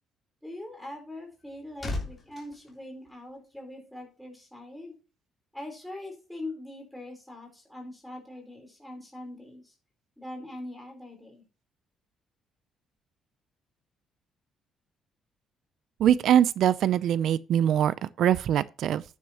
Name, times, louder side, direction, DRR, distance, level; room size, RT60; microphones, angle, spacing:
voice 1, 0.4-4.9 5.5-9.7 10.2-11.4, left 1 dB, ahead, 4.2 m, -42 dB
sound 1, 1.1-3.7 4.0-4.3, left 2 dB, 15° left, 3.6 m, -39 dB
voice 2, 16.0-19.0, right 10 dB, 60° right, 0.5 m, -23 dB
10.0 x 9.7 x 3.0 m
cardioid pair, 165°, 0 cm